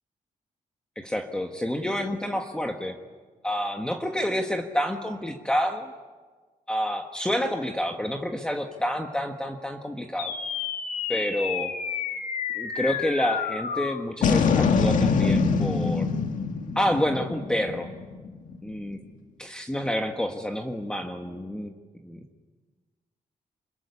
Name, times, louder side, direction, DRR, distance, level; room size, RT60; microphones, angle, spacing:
voice 1, 0.9-3.0 3.4-5.9 6.7-10.3 11.1-11.7 12.5-16.1 16.7-17.9 18.6-19.0 19.4-21.7 22.0-22.2, equal, 5° left, 3 dB, 1.5 m, -28 dB
sound 1, 10.2-18.8, left 5 dB, 70° left, 2.0 m, -26 dB
27.0 x 22.5 x 9.8 m, 1.4 s
wide cardioid pair, 165°, 14 cm